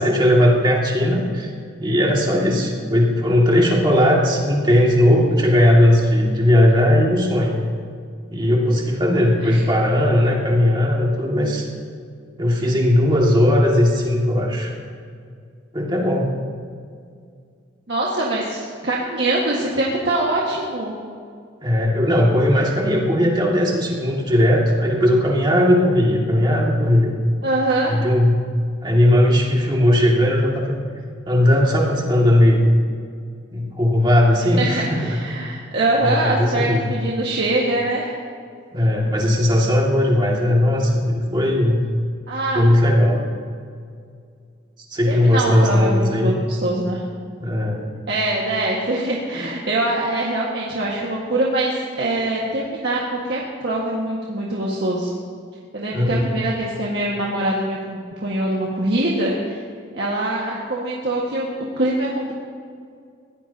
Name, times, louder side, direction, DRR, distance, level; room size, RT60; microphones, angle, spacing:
voice 1, 0.0-1.5 1.8-7.6 8.3-11.7 12.4-14.7 15.7-16.3 21.6-27.2 27.9-28.5 28.8-30.8 31.3-32.6 33.5-35.2 36.0-36.9 38.7-41.8 42.5-43.2 44.9-46.3 47.4-47.8 55.9-56.3, left 1 dB, 25° right, -2 dB, 2.2 m, -17 dB
voice 2, 17.9-20.9 27.4-28.0 34.6-38.2 42.3-42.7 45.1-47.0 48.1-55.1 55.7-59.6 59.9-61.5 61.8-62.3, right 1 dB, 55° right, -4 dB, 1.7 m, -23 dB
21.5 x 17.0 x 2.9 m, 2.2 s
head